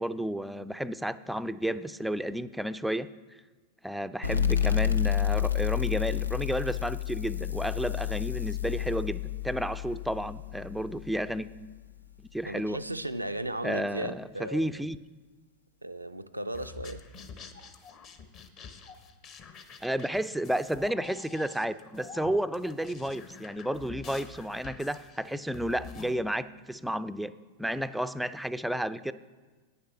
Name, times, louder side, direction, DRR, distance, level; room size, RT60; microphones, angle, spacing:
voice 1, 0.0-3.1 3.8-11.5 12.3-12.8 13.6-15.0 19.8-27.3 27.6-29.1, right 1 dB, ahead, 0.3 m, -32 dB
sound 1, 4.2-11.5, left 10 dB, 80° left, 0.4 m, -30 dB
voice 2, 12.5-14.8 15.8-17.0, right 1 dB, 85° right, 0.3 m, -36 dB
sound 2, 16.5-26.2, left 5 dB, 35° left, 0.8 m, -47 dB
9.3 x 6.7 x 5.6 m
figure-of-eight pair, 90°, 0 cm